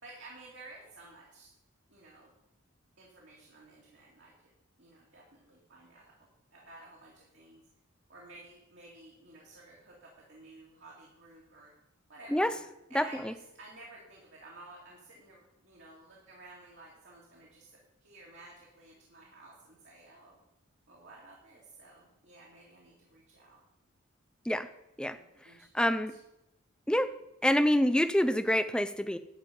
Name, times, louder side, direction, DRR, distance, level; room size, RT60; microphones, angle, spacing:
voice 1, 0.0-1.5 1.9-2.3 3.0-4.3 4.8-6.2 6.5-7.6 8.1-11.7 12.1-12.6 12.9-20.4 20.9-23.6 25.0-25.2 25.4-26.2, right 2 dB, 55° right, -4 dB, 2.5 m, -53 dB
voice 2, 12.9-13.3 24.5-24.7 25.0-25.1 25.7-26.1 26.9-27.1 27.4-29.2, equal, 5° left, 11 dB, 0.5 m, -26 dB
11.5 x 5.2 x 8.5 m, 0.87 s
head